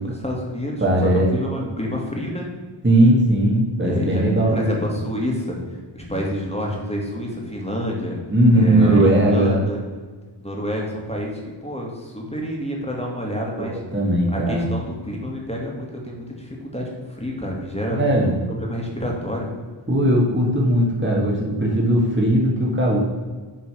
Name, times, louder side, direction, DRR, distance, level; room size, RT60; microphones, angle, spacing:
voice 1, 0.0-2.5 3.8-8.2 8.5-9.8 10.4-13.8 14.3-19.5, left 1 dB, 10° left, -1 dB, 2.0 m, -28 dB
voice 2, 0.8-1.3 2.8-4.6 8.3-9.6 13.6-14.7 17.9-18.4 19.9-23.0, right 1 dB, 25° right, -3 dB, 1.8 m, -18 dB
7.8 x 4.0 x 6.1 m, 1.4 s
wide cardioid pair, 55°, 49 cm